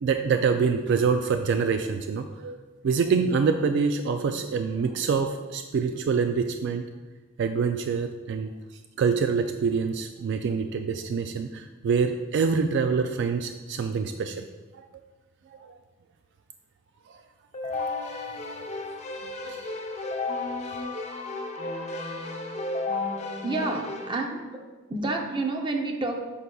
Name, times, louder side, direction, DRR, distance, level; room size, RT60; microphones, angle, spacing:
voice 1, 0.0-6.9 7.4-8.5 9.0-14.5 14.7-14.9 15.5-15.8 17.1-17.2 19.4-19.7, right 5 dB, 60° right, 7 dB, 0.3 m, -26 dB
Keyboard (musical), 17.5-24.1, left 3 dB, 35° left, 0.7 m, -33 dB
voice 2, 23.4-24.4 24.9-26.2, right 2 dB, 25° right, 3 dB, 0.6 m, -29 dB
8.0 x 5.5 x 2.3 m, 1.2 s
head